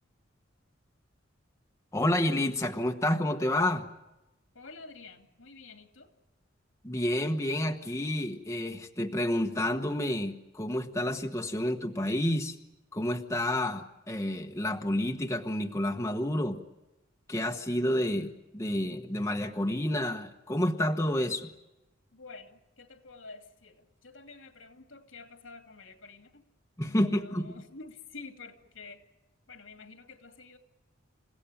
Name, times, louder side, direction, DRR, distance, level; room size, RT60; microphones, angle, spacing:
voice 1, 1.9-3.9 6.8-12.6 12.9-16.6 17.3-21.5 26.8-27.5, left 1 dB, 15° left, 1.2 m, -29 dB
voice 2, 4.5-6.1 22.1-26.4 26.8-29.0 29.5-30.6, left 4 dB, 90° left, 2.6 m, -49 dB
29.0 x 17.0 x 8.8 m
head